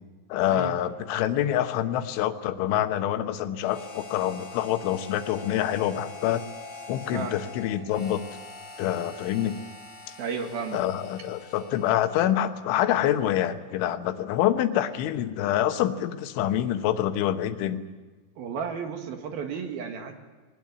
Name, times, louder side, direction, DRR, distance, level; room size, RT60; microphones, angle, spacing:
voice 1, 0.3-6.4 6.9-8.2 8.8-9.6 10.7-17.8, left 11 dB, 90° left, 8 dB, 3.6 m, -26 dB
Harmonica, 3.6-12.3, left 3 dB, 15° left, 6.2 m, -44 dB
voice 2, 10.2-10.8 18.4-20.1, right 6 dB, 60° right, 5 dB, 3.3 m, -33 dB
21.5 x 20.0 x 9.5 m, 1.3 s
omnidirectional pair, 5.3 m